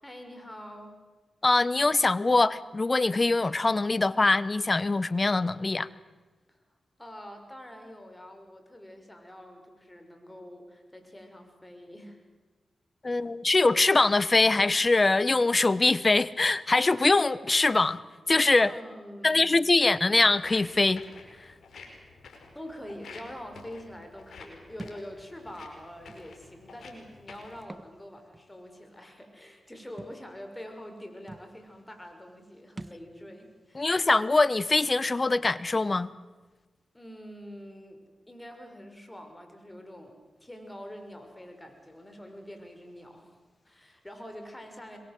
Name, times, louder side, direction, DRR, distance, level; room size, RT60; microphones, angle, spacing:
voice 1, 0.0-1.0 6.5-6.6 7.0-12.2 13.1-13.3 18.7-19.8 22.5-34.0 36.9-43.4 43.6-45.0, equal, 15° left, 6.3 m, -45 dB
voice 2, 1.4-5.9 13.0-18.0 18.3-18.7 19.2-21.0 33.7-36.1, left 3 dB, 40° left, 1.1 m, -23 dB
Walk footsteps, 20.3-27.6, left 4 dB, 75° left, 5.1 m, -50 dB
Thump thud, 24.8-25.0 26.1-26.2 27.6-27.9 28.3-28.4 30.0-30.2 31.0-31.1 31.3-31.5 32.8-33.1, right 2 dB, 30° right, 1.5 m, -43 dB
26.0 x 23.0 x 7.7 m
supercardioid pair, 40°, 0 cm